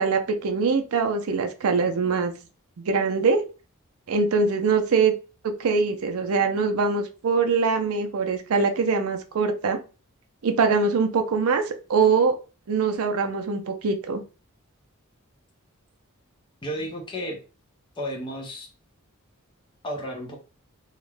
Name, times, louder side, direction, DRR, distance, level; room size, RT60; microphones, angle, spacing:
voice 1, 0.0-2.3 2.8-3.4 4.1-5.1 5.4-9.8 10.4-12.4 12.7-14.2, right 4 dB, 70° right, 6 dB, 0.4 m, -23 dB
voice 2, 16.6-17.4 18.0-18.7 19.8-20.4, equal, 20° left, 0 dB, 0.5 m, -32 dB
2.3 x 2.1 x 3.1 m, 0.33 s
head